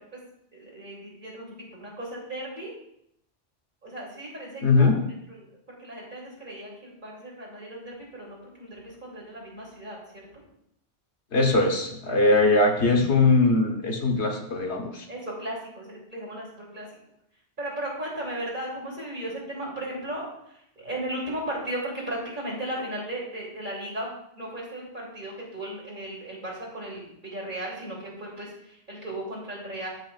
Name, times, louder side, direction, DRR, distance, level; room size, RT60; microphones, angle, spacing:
voice 1, 0.5-1.5 1.8-2.7 3.8-5.0 5.3-5.4 5.8-10.0 15.1-16.9 17.6-20.3 20.8-24.1 24.4-29.9, right 1 dB, 45° right, -4 dB, 3.2 m, -36 dB
voice 2, 4.6-5.0 11.3-15.1, left 3 dB, 85° left, 3 dB, 1.5 m, -21 dB
14.5 x 6.3 x 2.5 m, 0.75 s
omnidirectional pair, 1.1 m